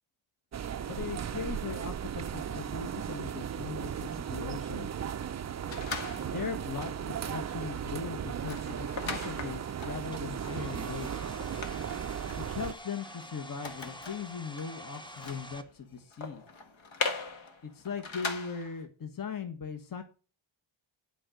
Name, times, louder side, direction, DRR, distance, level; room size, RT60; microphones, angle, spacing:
sound 1, 0.5-12.7, right 8 dB, 35° right, 0.4 m, -36 dB
voice 1, 0.9-4.9 6.2-11.2 12.4-16.4 17.6-20.0, left 6 dB, 45° left, 7 dB, 1.4 m, -39 dB
sound 2, 5.7-6.6 7.0-7.2 7.5-18.8, left 4 dB, 70° left, 1.7 m, -41 dB
Domestic sounds home sounds, 10.0-15.6, equal, 10° left, 0.7 m, -47 dB
11.0 x 5.1 x 7.7 m, 0.37 s
wide cardioid pair, 140°, 48 cm